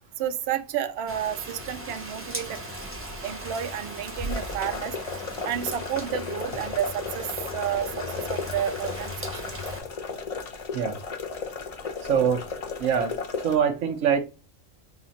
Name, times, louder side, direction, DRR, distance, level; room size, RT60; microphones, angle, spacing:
voice 1, 0.2-2.6 3.2-5.0 5.4-9.6 12.1-12.3, right 10 dB, 65° right, 10 dB, 0.7 m, -31 dB
Rain, 1.1-9.8, equal, 10° right, 0.8 m, -37 dB
sound 1, 4.3-13.6, left 5 dB, 40° left, 0.5 m, -35 dB
voice 2, 12.0-12.5 12.8-13.1 13.4-14.2, right 7 dB, 85° right, 5 dB, 1.1 m, -23 dB
4.1 x 2.4 x 4.0 m, 0.31 s
omnidirectional pair, 1.3 m